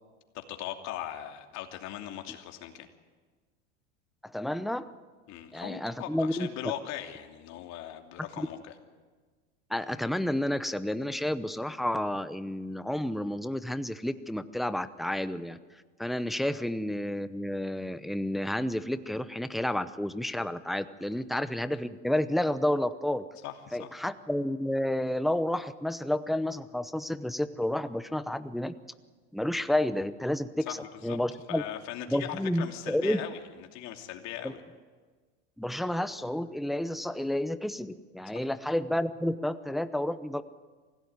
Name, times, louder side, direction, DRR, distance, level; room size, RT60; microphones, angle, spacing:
voice 1, 0.3-2.9 5.3-8.6 16.5-16.6 23.4-23.9 30.7-31.2 31.5-34.6 38.3-38.4, left 11 dB, 50° left, 4 dB, 2.8 m, -39 dB
voice 2, 4.2-4.9 5.5-6.5 8.4-8.5 9.7-15.6 16.0-23.3 23.7-28.7 29.3-30.7 31.0-31.6 32.1-33.2 34.4-34.5 35.6-40.4, left 1 dB, ahead, 12 dB, 0.7 m, -30 dB
25.0 x 16.5 x 9.6 m, 1.4 s
supercardioid pair, 120°, 35 cm